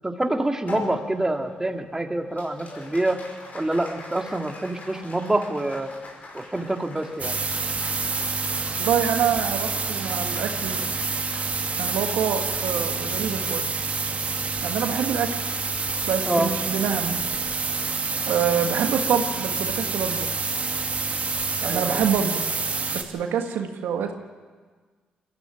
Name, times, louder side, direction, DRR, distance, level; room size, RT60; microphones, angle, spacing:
voice 1, 0.0-3.2 3.5-5.9 6.3-7.4 16.3-16.5 21.6-22.0, right 1 dB, 15° right, 4 dB, 2.3 m, -26 dB
Applause, 0.7-15.3, left 3 dB, 50° left, 5.4 m, -44 dB
sound 1, 7.2-23.0, right 4 dB, 40° right, 2.1 m, -27 dB
voice 2, 8.8-10.8 11.8-13.6 14.6-15.3 16.1-17.2 18.2-20.3 21.6-22.4 22.9-24.1, right 8 dB, 80° right, 5 dB, 1.6 m, -26 dB
22.0 x 14.0 x 9.2 m, 1.5 s
supercardioid pair, 55°, 3 cm